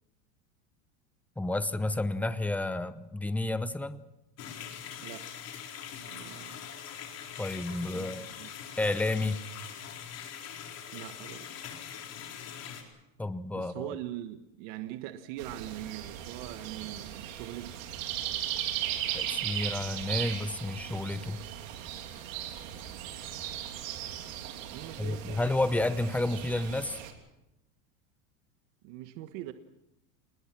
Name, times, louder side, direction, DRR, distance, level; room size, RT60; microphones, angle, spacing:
voice 1, 1.4-4.0 7.4-8.3 8.8-9.4 13.2-14.0 19.1-21.4 25.0-27.0, left 2 dB, 5° left, 13 dB, 0.9 m, -31 dB
sound 1, 4.4-12.8, left 8 dB, 40° left, 4.3 m, -43 dB
voice 2, 6.1-6.6 7.8-8.5 10.9-11.5 13.5-17.7 24.7-25.5 28.8-29.5, right 13 dB, 65° right, 8 dB, 1.5 m, -42 dB
sound 2, 15.4-27.1, right 11 dB, 80° right, 3.4 m, -37 dB
27.5 x 20.5 x 6.0 m, 0.91 s
supercardioid pair, 130°, 39 cm